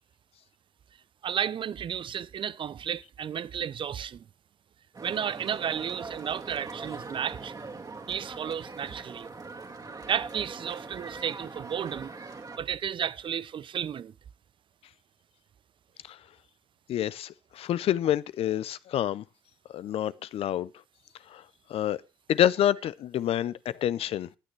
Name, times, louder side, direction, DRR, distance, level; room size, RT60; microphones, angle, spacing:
voice 1, 1.2-4.2 5.0-7.5 8.1-9.3 10.1-12.1 12.6-14.1, right 8 dB, 50° right, 0.6 m, -33 dB
sound 1, 4.9-12.6, right 4 dB, 35° right, 2.2 m, -42 dB
voice 2, 16.9-19.2 19.7-20.7 21.3-21.4 21.7-22.0 22.3-24.3, left 11 dB, 65° left, 0.6 m, -27 dB
14.5 x 9.5 x 3.2 m
hypercardioid pair, 50°, 11 cm